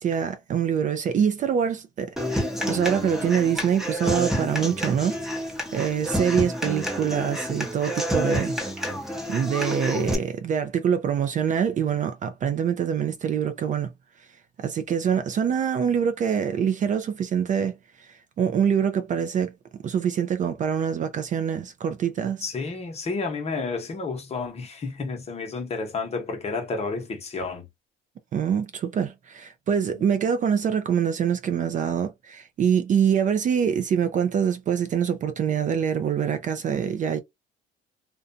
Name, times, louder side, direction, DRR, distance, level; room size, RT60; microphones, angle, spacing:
voice 1, 0.0-8.6 9.3-13.9 14.6-19.5 19.8-22.4 28.3-37.2, right 8 dB, 40° right, 0.4 m, -25 dB
Human voice / Acoustic guitar, 2.2-10.1, equal, ahead, 0.8 m, -29 dB
voice 2, 22.4-27.7 29.9-30.0, left 4 dB, 30° left, 0.9 m, -31 dB
2.5 x 2.2 x 2.5 m
cardioid pair, 120°, 21 cm